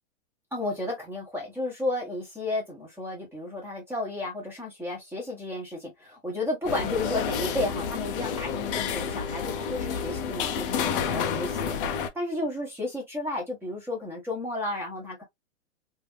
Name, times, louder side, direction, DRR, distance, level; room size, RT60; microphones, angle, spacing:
voice 1, 0.5-15.2, left 2 dB, 5° right, 1.3 m, -33 dB
sound 1, 6.6-12.1, left 6 dB, 45° left, 0.7 m, -30 dB
3.3 x 2.8 x 2.2 m
hypercardioid pair, 150°, 37 cm